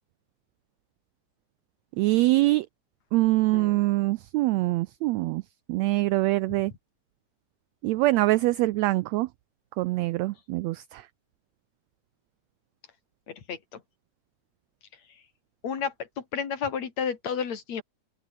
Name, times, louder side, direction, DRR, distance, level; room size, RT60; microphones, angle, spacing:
voice 1, 2.0-2.7 3.1-5.4 5.7-6.7 7.8-9.3 9.8-11.1, right 19 dB, 85° right, 1.5 m, -24 dB
voice 2, 13.3-13.8 15.6-17.8, left 7 dB, 60° left, 3.7 m, -32 dB
open air
omnidirectional pair, 3.6 m